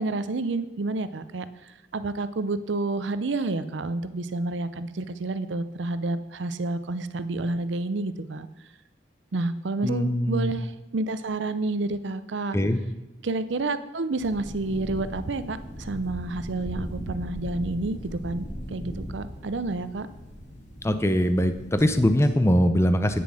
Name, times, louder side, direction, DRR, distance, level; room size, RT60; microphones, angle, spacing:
voice 1, 0.0-8.5 9.3-12.6 13.2-20.1, right 2 dB, 75° right, 13 dB, 0.6 m, -29 dB
voice 2, 9.8-10.5 12.5-12.8 20.8-23.2, equal, 15° left, 9 dB, 0.6 m, -22 dB
sound 1, 14.2-22.2, equal, 45° left, 3.7 m, -38 dB
9.5 x 7.0 x 6.4 m, 1.0 s
head